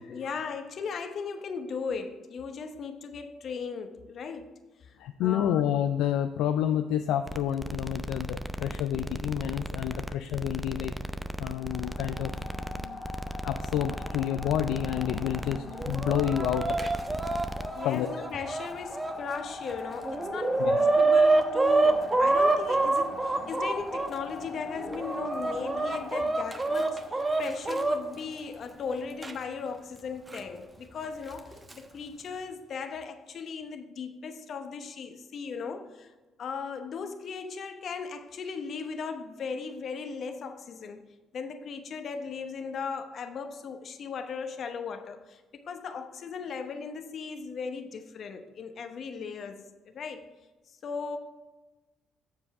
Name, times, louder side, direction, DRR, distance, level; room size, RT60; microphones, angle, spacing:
voice 1, 0.0-4.5 5.2-5.7 17.8-36.1 36.4-41.0 41.3-50.2 50.8-51.2, left 5 dB, 55° left, 7 dB, 0.9 m, -37 dB
voice 2, 5.0-10.9 11.4-12.4 13.4-16.8 17.8-18.2 20.6-20.8, left 10 dB, 75° left, 7 dB, 0.4 m, -29 dB
sound 1, 7.3-17.7, right 1 dB, ahead, 0.6 m, -37 dB
sound 2, 11.5-29.2, left 3 dB, 25° left, 2.1 m, -42 dB
Chicken rooster, 15.7-19.1 19.7-19.8 20.0-24.1 24.7-28.0 29.2-29.3 30.3-30.4 31.4-31.7, right 3 dB, 25° right, 0.9 m, -26 dB
7.5 x 7.1 x 3.6 m, 1.2 s
hypercardioid pair, 55°, 0 cm